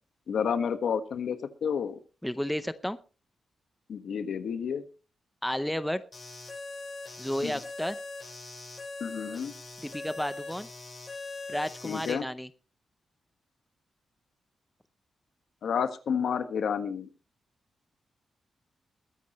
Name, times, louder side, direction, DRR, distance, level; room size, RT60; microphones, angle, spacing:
voice 1, 0.3-2.0 3.9-4.8 7.4-7.6 9.0-9.5 11.8-12.3 15.6-17.1, left 7 dB, 70° left, 10 dB, 1.4 m, -30 dB
voice 2, 2.2-3.0 5.4-6.0 7.2-8.0 9.8-10.7 11.5-12.5, equal, 5° left, 12 dB, 0.6 m, -32 dB
sound 1, 6.1-12.1, left 3 dB, 25° left, 7.8 m, -41 dB
22.0 x 10.0 x 3.0 m, 0.33 s
wide cardioid pair, 165°, 0 cm